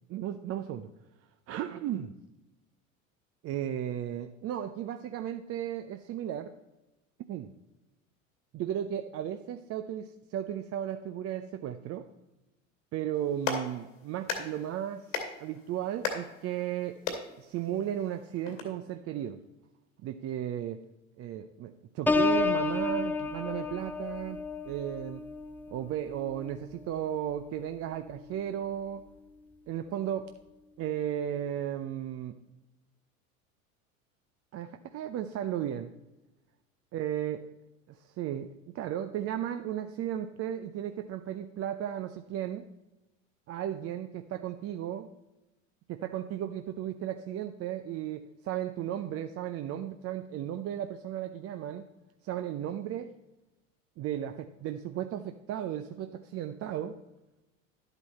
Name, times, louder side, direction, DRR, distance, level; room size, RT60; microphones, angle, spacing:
voice 1, 0.1-0.9 1.5-2.1 3.4-6.5 7.3-7.5 8.5-12.1 12.9-15.1 15.4-17.0 17.4-19.4 20.0-20.8 21.2-24.4 24.7-25.2 25.7-29.0 29.7-30.3 30.8-32.4 34.5-35.9 36.9-37.5 37.9-42.7 43.5-45.1 45.9-51.9 52.2-53.1 54.0-57.0, right 10 dB, 35° right, 8 dB, 0.6 m, -35 dB
Clapping, 13.1-18.6, left 5 dB, 70° left, 2.4 m, -38 dB
Piano, 22.1-27.7 28.2-28.5, left 4 dB, 5° left, 0.6 m, -32 dB
11.0 x 8.1 x 4.2 m, 0.97 s
hypercardioid pair, 80°, 40 cm